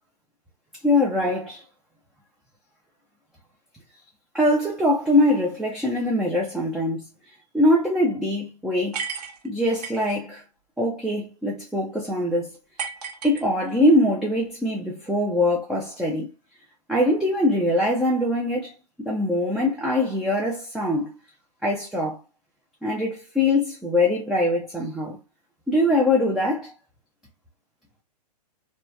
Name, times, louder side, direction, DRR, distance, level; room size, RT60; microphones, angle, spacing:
voice 1, 0.8-1.6 4.3-7.0 7.5-9.0 9.4-10.4 10.8-12.6 13.2-16.3 16.9-18.7 19.0-21.1 21.6-22.2 22.8-25.2 25.7-26.7, left 1 dB, 5° right, 0.3 m, -22 dB
sound 1, 8.9-10.2 12.8-13.9, right 6 dB, 70° right, 0.8 m, -34 dB
2.7 x 2.1 x 2.2 m
hypercardioid pair, 125°, 21 cm